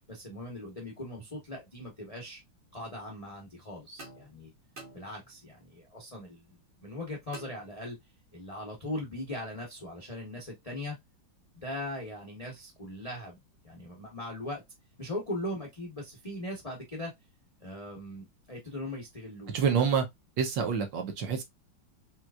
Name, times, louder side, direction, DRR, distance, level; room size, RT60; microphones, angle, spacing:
voice 1, 0.1-2.4 2.7-4.5 4.9-8.0 8.3-11.0 11.5-13.4 13.6-14.6 15.0-17.1 17.6-19.6, left 1 dB, 65° left, 0.3 m, -39 dB
sound 1, 4.0-5.6 7.3-8.3, right 2 dB, 50° right, 0.6 m, -51 dB
voice 2, 19.5-20.1 20.4-21.4, right 6 dB, 70° right, 1.4 m, -27 dB
4.4 x 2.4 x 2.3 m
omnidirectional pair, 2.2 m